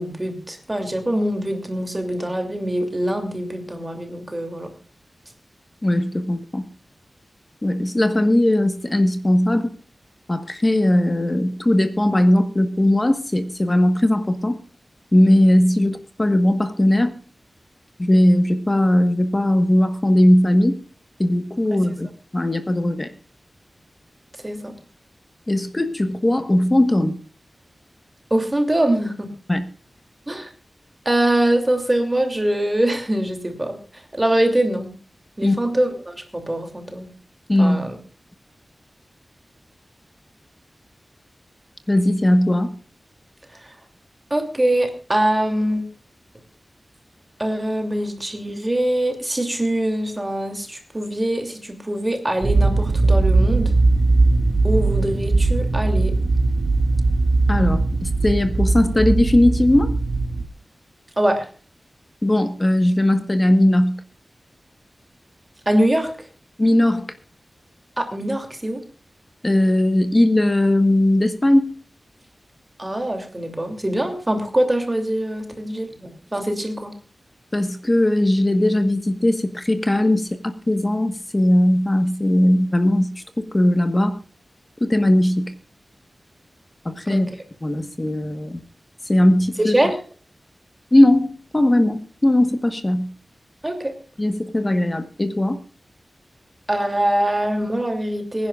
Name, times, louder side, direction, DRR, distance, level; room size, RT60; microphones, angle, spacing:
voice 1, 0.0-4.7 21.7-22.0 24.4-24.7 28.3-29.3 30.3-30.5 31.0-34.9 35.4-37.1 37.6-38.0 43.5-43.7 44.3-45.9 47.4-53.7 54.6-56.1 61.2-61.5 65.7-66.3 68.0-68.8 72.8-76.9 87.1-87.2 89.6-89.9 93.6-93.9 96.7-98.5, right 1 dB, 20° right, 5 dB, 2.8 m, -23 dB
voice 2, 5.8-6.6 7.6-9.7 10.3-14.6 15.1-17.2 18.0-20.8 21.2-22.1 22.3-23.1 25.5-27.2 29.5-29.6 35.4-35.5 37.5-37.8 41.9-42.7 57.5-59.9 62.2-64.0 66.6-67.1 69.4-71.7 77.5-84.2 84.8-85.5 86.8-87.3 87.6-88.6 89.0-89.8 90.9-93.1 94.2-95.6, left 1 dB, 25° left, 9 dB, 1.3 m, -18 dB
sound 1, 52.4-60.5, right 3 dB, 50° right, 2.3 m, -19 dB
25.0 x 10.5 x 2.4 m, 0.40 s
wide cardioid pair, 95°, 0 cm